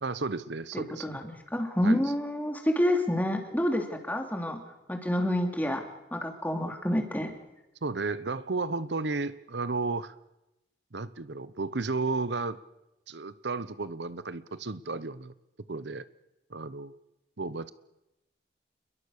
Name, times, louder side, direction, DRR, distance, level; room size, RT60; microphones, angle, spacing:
voice 1, 0.0-1.1 1.8-2.0 7.8-10.1 10.9-12.6 13.1-15.3 15.7-16.1 16.5-16.9 17.4-17.7, right 3 dB, 75° right, 15 dB, 0.9 m, -33 dB
voice 2, 0.7-4.6 4.9-5.8 6.1-7.3, left 1 dB, 10° left, 3 dB, 3.0 m, -28 dB
29.0 x 22.0 x 6.6 m, 0.93 s
head